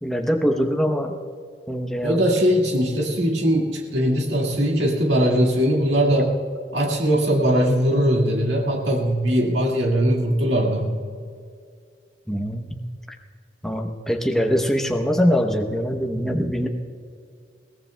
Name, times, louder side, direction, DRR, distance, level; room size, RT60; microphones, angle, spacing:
voice 1, 0.0-1.2 1.7-2.2 12.3-12.8 13.6-16.7, equal, 5° left, 2 dB, 0.8 m, -23 dB
voice 2, 2.0-6.4 6.7-11.0, equal, 80° right, -1 dB, 1.9 m, -20 dB
22.0 x 17.5 x 2.3 m, 2.2 s
head